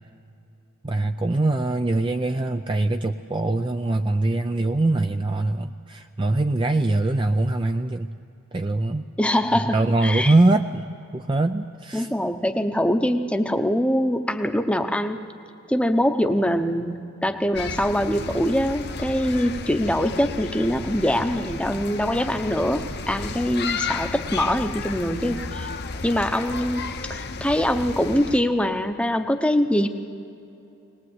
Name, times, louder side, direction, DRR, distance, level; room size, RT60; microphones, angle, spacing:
voice 1, 0.8-8.1 8.5-9.0 9.7-12.1, right 2 dB, 20° right, 6 dB, 0.4 m, -23 dB
voice 2, 9.2-10.3 11.9-15.2 15.7-25.7 26.0-29.9, equal, 5° left, 7 dB, 0.8 m, -23 dB
sound 1, 17.5-28.4, left 4 dB, 50° left, 1.0 m, -33 dB
22.0 x 19.5 x 8.0 m, 2.7 s
head